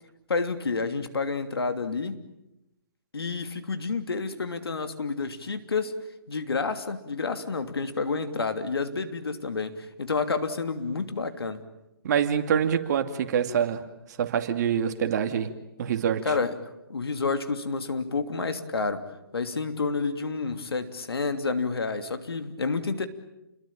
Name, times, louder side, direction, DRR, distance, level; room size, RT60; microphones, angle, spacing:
voice 1, 0.3-2.2 3.1-5.9 6.3-11.6 16.2-16.5 16.9-19.0 19.3-23.1, left 4 dB, 85° left, 8 dB, 3.0 m, -29 dB
voice 2, 12.0-13.8 14.2-15.5 15.8-16.3, right 8 dB, 45° right, 7 dB, 2.6 m, -25 dB
29.5 x 22.0 x 9.0 m, 0.91 s
hypercardioid pair, 150°, 13 cm